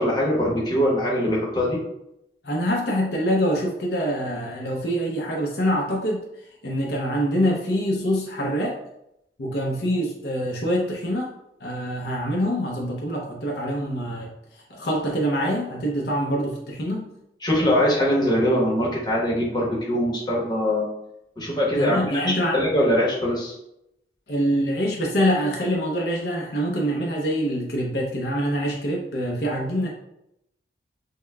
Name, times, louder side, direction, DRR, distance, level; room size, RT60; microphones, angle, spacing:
voice 1, 0.0-1.8 17.4-20.9 21.4-23.6, equal, 25° left, -4 dB, 0.9 m, -22 dB
voice 2, 2.4-6.2 6.6-8.8 9.4-11.3 11.6-14.3 14.7-17.1 21.8-22.6 24.3-29.9, equal, 65° left, -2 dB, 0.6 m, -25 dB
6.3 x 2.2 x 2.2 m, 0.82 s
head